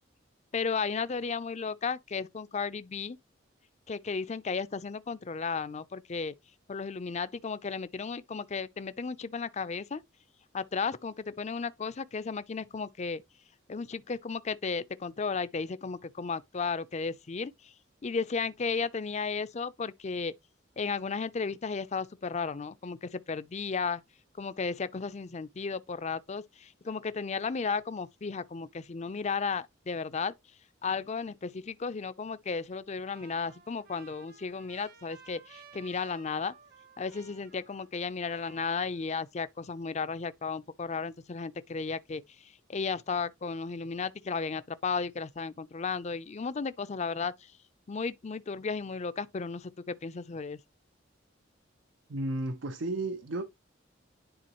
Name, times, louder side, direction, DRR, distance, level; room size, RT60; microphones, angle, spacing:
voice 1, 0.5-3.2 3.9-6.3 6.7-10.0 10.5-13.2 13.7-17.5 18.0-20.3 20.8-24.0 24.4-30.3 30.8-36.5 37.0-42.2 42.7-47.3 47.9-50.6, left 5 dB, 35° left, 0.5 m, -34 dB
Trumpet, 33.0-38.0 38.2-39.3, right 4 dB, 50° right, 1.1 m, -56 dB
voice 2, 52.1-53.4, right 2 dB, 75° right, 0.7 m, -33 dB
10.5 x 3.8 x 2.9 m
head